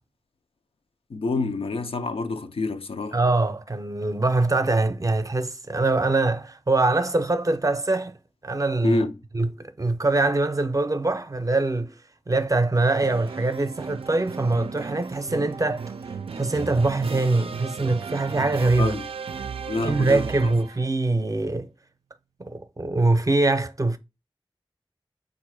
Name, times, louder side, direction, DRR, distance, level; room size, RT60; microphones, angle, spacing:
voice 1, 1.1-3.2 8.8-9.1 18.8-19.1 19.7-20.5, left 3 dB, 85° left, 0.5 m, -27 dB
voice 2, 3.1-8.1 8.4-9.0 9.3-11.9 12.3-15.9 16.3-19.0 19.8-21.7 22.4-24.0, right 2 dB, 35° right, 0.5 m, -23 dB
sound 1, 13.0-20.9, right 5 dB, 85° right, 0.4 m, -35 dB
4.1 x 2.5 x 4.6 m
wide cardioid pair, 50°, 9 cm